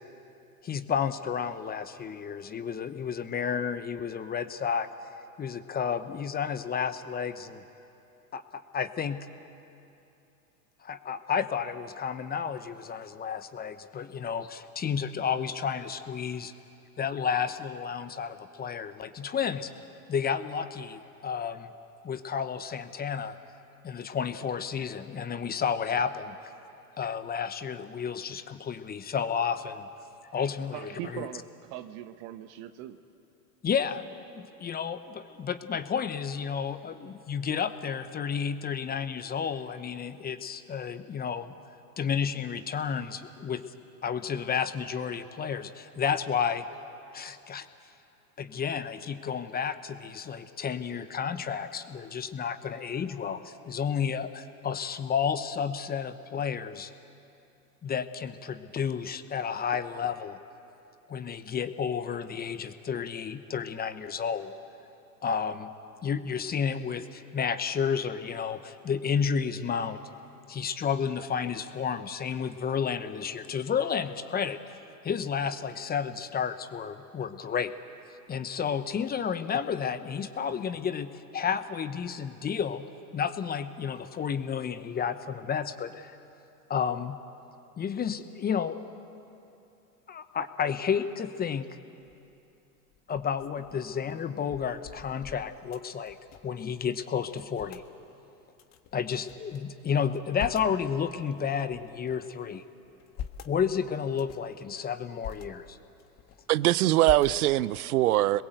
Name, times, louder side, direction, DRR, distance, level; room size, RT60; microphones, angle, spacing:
voice 1, 0.6-4.9 5.4-7.6 8.3-9.2 10.8-16.5 17.0-19.7 20.1-21.7 22.0-23.3 23.8-26.4 27.0-29.9 30.3-30.8 31.1-31.2 33.6-34.0 34.4-41.5 42.0-43.6 44.0-46.6 47.1-47.7 48.4-56.9 57.8-60.4 61.1-64.5 65.2-65.7 66.0-70.0 70.5-74.8 75.0-77.7 78.3-82.8 83.1-86.2 86.7-87.2 87.8-88.8 90.1-91.7 93.1-96.2 96.4-97.8 98.9-102.6 103.4-105.8, left 7 dB, 20° left, 11 dB, 1.0 m, -31 dB
voice 2, 30.7-33.0, right 12 dB, 50° right, 10 dB, 1.2 m, -41 dB
sound 1, 92.1-92.4 92.9-96.7 96.9-97.0 97.3-97.9 98.6-99.6 100.0-100.8 101.4-102.3 102.8-103.6 104.1-104.5 105.0-105.5 105.9-106.6 107.0-107.8, left 9 dB, 35° left, 1.5 m, -44 dB
voice 3, 106.5-108.4, right 15 dB, 70° right, 20 dB, 0.7 m, -22 dB
27.0 x 21.5 x 8.0 m, 2.8 s
hypercardioid pair, 100°, 46 cm